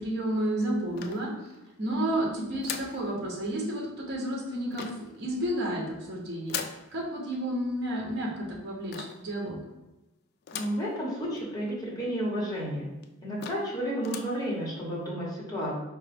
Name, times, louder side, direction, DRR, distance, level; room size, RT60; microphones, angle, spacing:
voice 1, 0.0-1.3 1.8-6.6 6.9-9.6, right 1 dB, 55° right, -3 dB, 0.9 m, -31 dB
sound 1, 1.0-1.7 2.6-3.0 4.7-5.2 6.5-6.9 8.9-9.3 10.5-10.9 11.4-11.5 11.7-11.8 12.5-12.6 13.0-13.1 13.4-13.7 14.0-14.4, left 7 dB, 50° left, 0.3 m, -38 dB
voice 2, 10.5-13.0 13.2-15.8, equal, 20° left, -5 dB, 1.1 m, -32 dB
4.5 x 2.2 x 3.3 m, 0.99 s
head